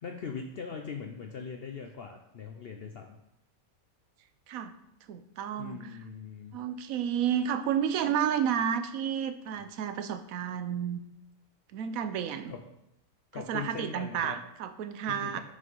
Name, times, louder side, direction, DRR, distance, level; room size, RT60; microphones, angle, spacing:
voice 1, 0.0-3.2 5.6-6.6 12.5-12.6 13.3-14.4 15.1-15.4, left 6 dB, 55° left, 3 dB, 0.8 m, -40 dB
voice 2, 5.1-5.9 6.5-11.0 11.7-12.5 13.3-15.4, right 8 dB, 85° right, 11 dB, 1.1 m, -31 dB
6.5 x 5.6 x 5.3 m, 0.81 s
omnidirectional pair, 1.4 m